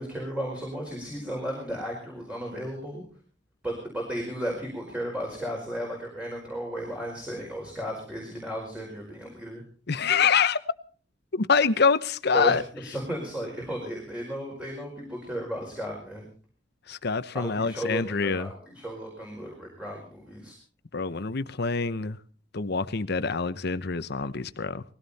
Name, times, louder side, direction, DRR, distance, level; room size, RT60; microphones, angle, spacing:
voice 1, 0.0-3.0 3.6-9.6 12.3-16.2 17.3-20.5, equal, 5° right, -1 dB, 4.8 m, -34 dB
voice 2, 9.9-10.6 11.3-12.6 16.9-18.5 20.9-22.2 22.5-24.8, left 5 dB, 60° left, 14 dB, 0.9 m, -25 dB
20.0 x 16.5 x 4.2 m, 0.42 s
head